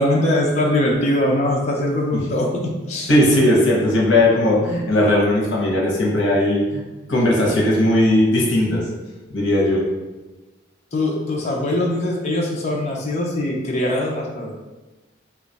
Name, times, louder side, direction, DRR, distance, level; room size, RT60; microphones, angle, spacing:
voice 1, 0.0-3.1 10.9-14.5, left 1 dB, 35° left, -2 dB, 0.5 m, -21 dB
voice 2, 3.1-6.8 7.1-8.9 9.3-9.9, left 1 dB, 85° left, -2 dB, 0.8 m, -17 dB
2.9 x 2.3 x 4.0 m, 1.1 s
head